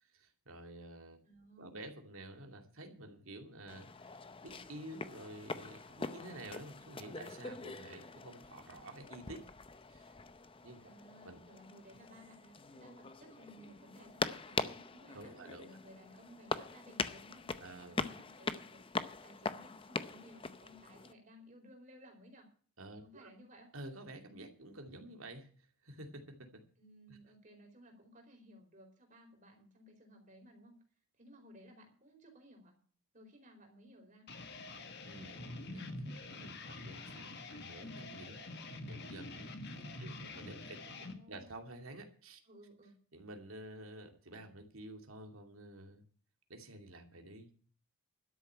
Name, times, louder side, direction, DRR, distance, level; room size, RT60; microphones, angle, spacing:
voice 1, 0.0-1.2 1.6-4.1 4.4-9.4 9.9-10.2 10.6-10.8 11.2-11.4 15.1-15.7 17.6-18.0 22.8-23.3 23.7-26.6 27.1-27.2 35.0-42.4 43.1-46.0 46.5-47.5, right 1 dB, 70° right, 5 dB, 2.5 m, -50 dB
voice 2, 1.2-1.9 10.8-17.6 17.9-18.9 19.2-22.5 23.0-23.7 26.8-30.8 31.2-32.8 33.1-34.3 40.8-41.6 42.5-43.0, equal, 35° right, 2 dB, 4.5 m, -58 dB
sound 1, 3.7-21.1, left 4 dB, 25° left, 0.6 m, -43 dB
sound 2, 34.3-41.2, left 2 dB, 50° left, 1.6 m, -46 dB
12.5 x 7.1 x 8.6 m, 0.43 s
head